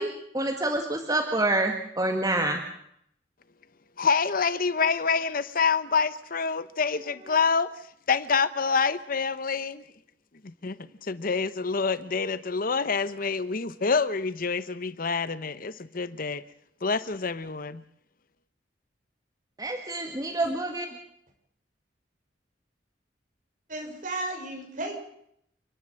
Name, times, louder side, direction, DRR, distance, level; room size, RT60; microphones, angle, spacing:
voice 1, 0.0-2.6 19.6-20.9, right 2 dB, 20° right, 4 dB, 1.9 m, -27 dB
voice 2, 4.0-7.7 8.1-9.8 10.6-10.8 11.0-16.4 16.8-17.8, left 5 dB, 55° left, 15 dB, 0.9 m, -27 dB
voice 3, 23.7-24.9, right 2 dB, 50° right, 2 dB, 6.1 m, -34 dB
30.0 x 11.0 x 7.7 m, 0.71 s
head